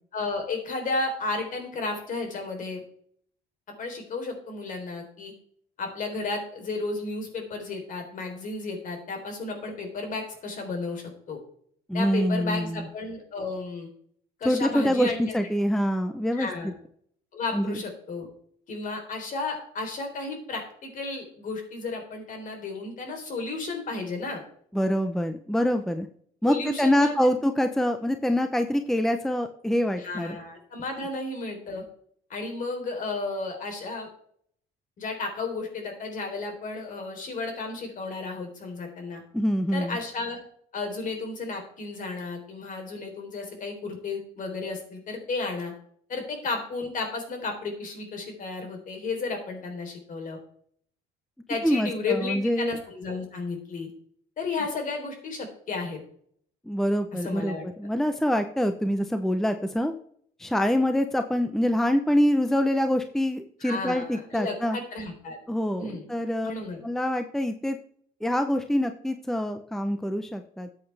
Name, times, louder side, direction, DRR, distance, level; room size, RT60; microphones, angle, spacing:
voice 1, 0.1-2.8 3.8-5.3 5.8-11.4 11.9-13.9 14.4-15.3 16.3-16.7 17.3-18.3 18.7-24.4 26.4-27.3 30.0-31.8 32.3-34.1 35.0-39.2 39.7-40.4 40.7-45.7 46.1-50.4 51.5-53.9 54.4-56.0 57.1-57.6 63.6-65.4 65.8-66.1 66.4-66.8, left 3 dB, 50° left, 3 dB, 3.6 m, -33 dB
voice 2, 11.9-12.9 14.4-16.5 17.5-17.8 24.7-26.1 26.4-30.4 39.3-40.0 51.6-52.7 56.7-59.9 60.4-64.8 65.5-66.5 66.8-67.8 68.2-70.7, equal, ahead, 7 dB, 0.7 m, -25 dB
13.0 x 8.1 x 3.4 m, 0.63 s
cardioid pair, 110°, 17 cm